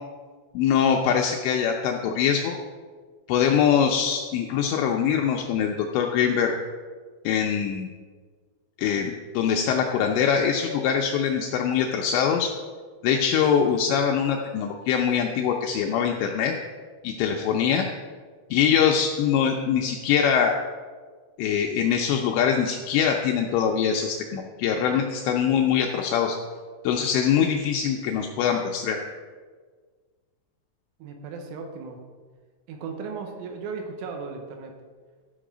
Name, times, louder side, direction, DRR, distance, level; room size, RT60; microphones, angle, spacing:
voice 1, 0.5-2.6 3.3-6.5 7.2-7.9 8.8-12.5 13.0-16.5 17.0-17.9 18.5-20.5 21.4-26.4 26.8-29.0, left 7 dB, 85° left, 2 dB, 2.5 m, -23 dB
voice 2, 31.0-32.0 32.7-34.8, right 5 dB, 80° right, 4 dB, 3.3 m, -36 dB
12.0 x 5.4 x 5.0 m, 1.5 s
omnidirectional pair, 5.7 m